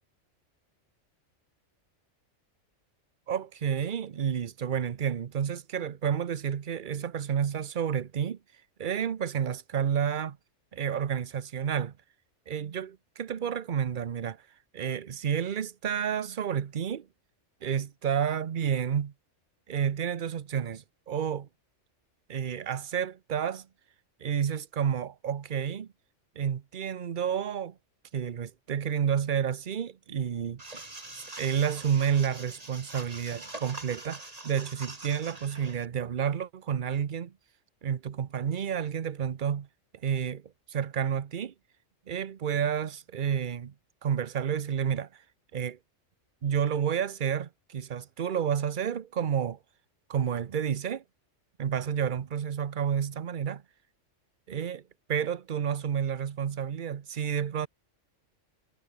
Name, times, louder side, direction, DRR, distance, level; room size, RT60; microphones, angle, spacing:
voice 1, 3.3-8.4 8.8-10.4 10.7-11.9 12.5-14.4 14.7-17.1 17.6-19.1 19.7-21.5 22.3-23.7 24.2-25.9 26.4-27.8 28.1-30.6 31.1-37.3 37.8-39.7 40.0-41.5 42.1-43.7 44.0-45.2 45.5-45.8 46.4-49.6 50.1-51.0 51.6-53.6 54.5-54.8 55.1-57.7, right 8 dB, 45° right, 0.9 m, -30 dB
sound 1, 30.6-35.9, right 2 dB, 30° right, 2.8 m, -44 dB
omnidirectional pair, 1.3 m